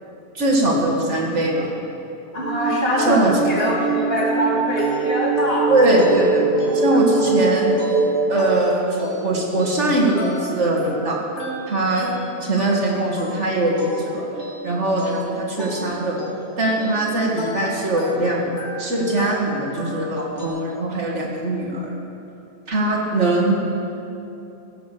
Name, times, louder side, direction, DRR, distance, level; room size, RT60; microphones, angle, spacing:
voice 1, 0.3-1.7 3.1-3.3 5.7-7.7 8.3-11.2 11.7-12.1 12.4-14.3 14.6-16.2 16.6-18.5 18.8-21.9 22.7-23.6, right 2 dB, 85° right, -2 dB, 2.3 m, -21 dB
voice 2, 2.3-5.7, equal, 55° left, -4 dB, 2.6 m, -23 dB
sound 1, 2.4-8.6, right 4 dB, 65° right, 1.4 m, -23 dB
sound 2, 3.0-20.5, equal, 75° left, 2.8 m, -34 dB
16.0 x 7.4 x 6.8 m, 2.8 s
omnidirectional pair, 1.2 m